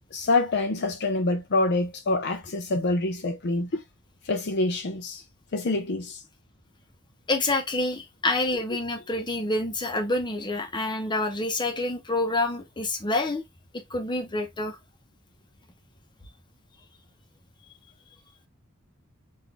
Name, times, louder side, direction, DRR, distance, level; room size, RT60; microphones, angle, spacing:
voice 1, 0.1-3.8 4.3-5.2 5.5-6.2, left 2 dB, 55° left, 0.6 m, -26 dB
voice 2, 7.3-13.4 13.9-14.8, left 2 dB, 20° left, 0.8 m, -27 dB
3.9 x 2.6 x 3.3 m
head